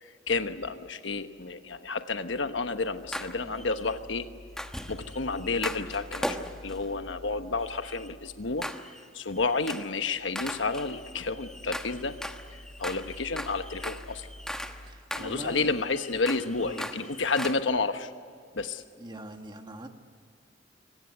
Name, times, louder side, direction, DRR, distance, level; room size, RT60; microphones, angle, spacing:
voice 1, 0.0-4.3 4.9-6.4 6.6-8.7 9.1-12.2 12.5-14.3 15.1-18.1 18.5-18.8, left 3 dB, 70° left, 9 dB, 1.2 m, -30 dB
sound 1, 3.1-4.0 4.6-6.9 7.6-8.1 8.6-9.1 9.4-9.9 10.4-14.8 15.1-17.6, equal, 5° left, 1.2 m, -39 dB
voice 2, 14.8-15.7 16.6-16.8 19.0-19.9, right 1 dB, 25° right, 5 dB, 1.7 m, -42 dB
24.5 x 18.5 x 9.6 m, 2.2 s
head